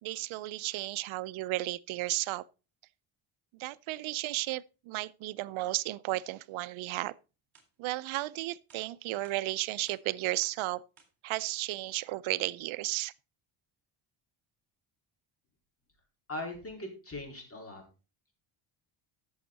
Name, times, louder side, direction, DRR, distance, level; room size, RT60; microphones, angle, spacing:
voice 1, 0.0-2.4 3.6-7.1 7.8-10.8 11.2-13.1, right 17 dB, 75° right, 0.6 m, -34 dB
sound 1, 7.5-7.7 8.1-8.3 8.7-8.8 9.2-9.4 9.9-10.0 10.4-10.6 11.0-11.1, right 6 dB, 45° right, 3.9 m, -60 dB
voice 2, 16.3-17.8, left 2 dB, 30° left, 4.3 m, -40 dB
13.5 x 7.2 x 4.0 m
cardioid pair, 135°, 49 cm